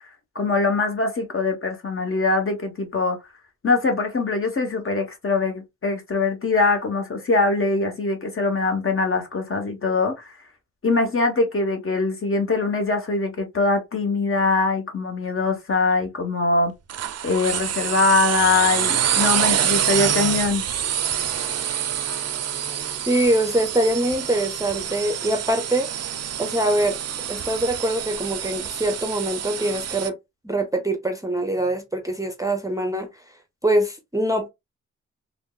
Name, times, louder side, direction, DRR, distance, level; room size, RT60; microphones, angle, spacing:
voice 1, 0.3-3.2 3.6-10.3 10.8-16.7 17.2-20.6, left 3 dB, 40° left, 1.0 m, -22 dB
sound 1, 16.9-30.1, right 9 dB, 55° right, 0.4 m, -26 dB
voice 2, 23.1-25.9 26.4-27.0 27.3-30.2 30.4-33.1 33.6-34.5, right 1 dB, 10° right, 0.6 m, -23 dB
3.4 x 2.0 x 2.2 m
cardioid pair, 60°, 32 cm